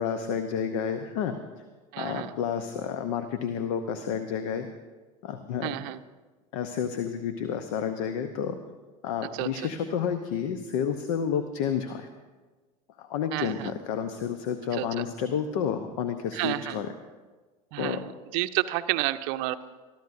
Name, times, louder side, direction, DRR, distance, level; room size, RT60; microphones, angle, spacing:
voice 1, 0.0-1.4 2.0-4.7 5.2-5.8 6.5-8.6 9.0-12.1 13.0-16.9 17.8-18.0, left 7 dB, 60° left, 9 dB, 0.8 m, -30 dB
voice 2, 1.9-2.3 5.6-6.0 9.3-9.7 13.3-13.7 14.7-15.0 16.3-16.8 17.7-19.6, right 17 dB, 50° right, 12 dB, 0.6 m, -30 dB
23.5 x 13.0 x 2.6 m, 1.3 s
figure-of-eight pair, 75°, 20 cm